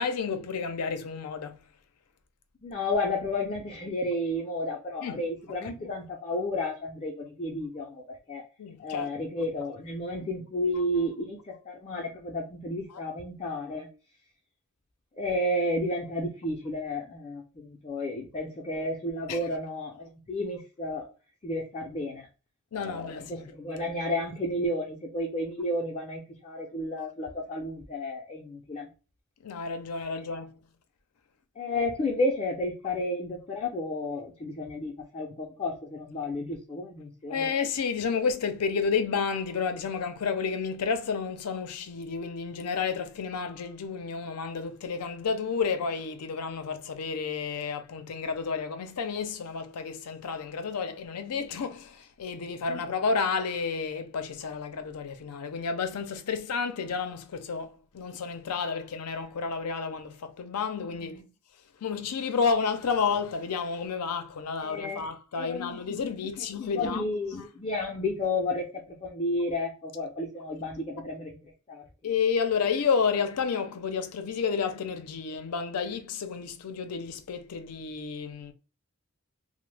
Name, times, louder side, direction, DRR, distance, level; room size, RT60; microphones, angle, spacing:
voice 1, 0.0-1.6 5.0-5.2 5.6-5.8 8.6-9.1 19.3-19.4 22.7-23.5 29.4-30.6 37.3-61.2 61.8-67.1 72.0-78.5, left 5 dB, 90° left, 0.5 m, -31 dB
voice 2, 2.6-8.4 8.8-13.9 15.1-21.1 21.4-22.3 22.7-28.9 31.6-37.5 52.7-52.9 60.9-61.2 64.6-65.1 65.3-65.9 66.4-71.4 71.7-71.8, left 1 dB, 25° left, 0.4 m, -32 dB
2.9 x 2.0 x 3.2 m
head